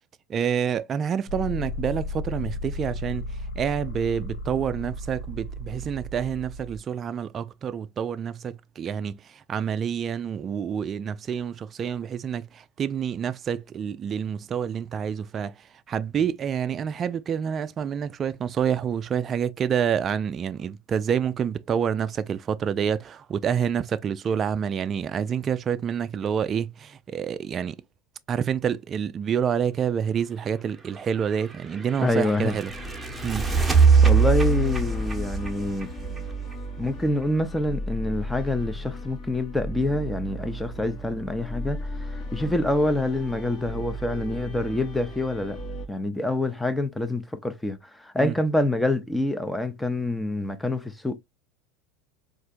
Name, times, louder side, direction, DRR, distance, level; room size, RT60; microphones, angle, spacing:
voice 1, 0.3-3.3 3.6-27.8 28.3-32.7 33.2-33.5 48.2-48.3, right 8 dB, 35° right, 0.3 m, -28 dB
sound 1, 1.3-6.8, left 1 dB, 70° left, 0.6 m, -34 dB
sound 2, 31.1-36.9, right 5 dB, 10° right, 0.9 m, -22 dB
voice 2, 32.0-32.6 34.0-35.9 36.8-45.6 45.9-51.2, left 1 dB, 5° left, 0.6 m, -26 dB
sound 3, 32.6-45.9, equal, 50° left, 1.1 m, -36 dB
4.3 x 2.5 x 2.5 m
hypercardioid pair, 85°, 0 cm